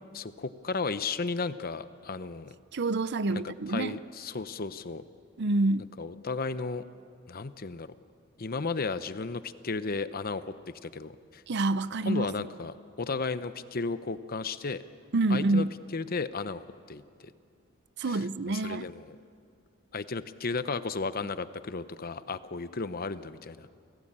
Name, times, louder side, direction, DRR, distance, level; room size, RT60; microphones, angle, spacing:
voice 1, 0.1-2.5 3.3-5.0 6.0-6.8 7.3-7.9 8.4-10.4 10.8-11.4 12.1-14.8 15.3-15.7 15.9-16.6 16.9-17.0 18.0-19.2 19.9-23.7, left 4 dB, 45° left, 0.8 m, -34 dB
voice 2, 2.7-4.0 5.4-5.9 11.5-12.3 15.1-15.8 18.0-18.9, right 2 dB, 55° right, 0.6 m, -27 dB
30.0 x 17.0 x 8.8 m
head